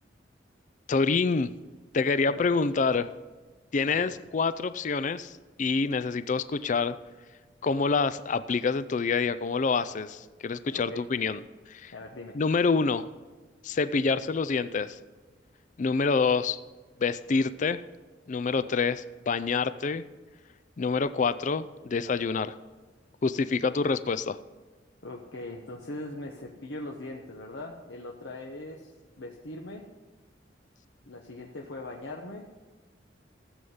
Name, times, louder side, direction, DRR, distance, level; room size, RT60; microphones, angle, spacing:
voice 1, 0.9-1.5 1.9-3.1 3.7-5.3 5.6-7.0 7.6-11.4 11.7-11.9 12.3-13.1 13.6-15.0 15.8-16.6 17.0-17.8 18.3-20.0 20.8-22.5 23.2-24.4, left 4 dB, 40° left, 14 dB, 0.4 m, -27 dB
voice 2, 10.7-11.1 11.9-12.4 25.0-28.9 29.2-29.9 31.0-32.4, left 2 dB, 80° left, 0 dB, 1.1 m, -40 dB
14.5 x 7.9 x 5.6 m, 1.3 s
head